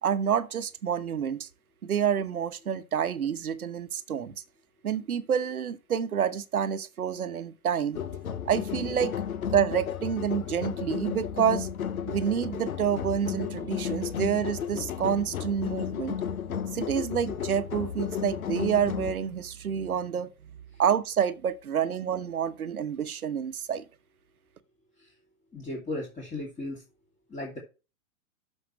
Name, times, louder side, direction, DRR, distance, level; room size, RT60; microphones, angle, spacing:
voice 1, 0.0-1.5 1.8-4.3 4.8-8.0 8.5-9.1 9.5-11.7 12.1-16.2 16.7-20.3 20.8-23.8, right 8 dB, 85° right, 1.1 m, -28 dB
sound 1, 7.9-19.1, left 8 dB, 75° left, 1.1 m, -33 dB
voice 2, 25.5-26.8 27.3-27.6, left 2 dB, 15° left, 2.6 m, -35 dB
12.0 x 5.9 x 3.2 m
hypercardioid pair, 115°, 43 cm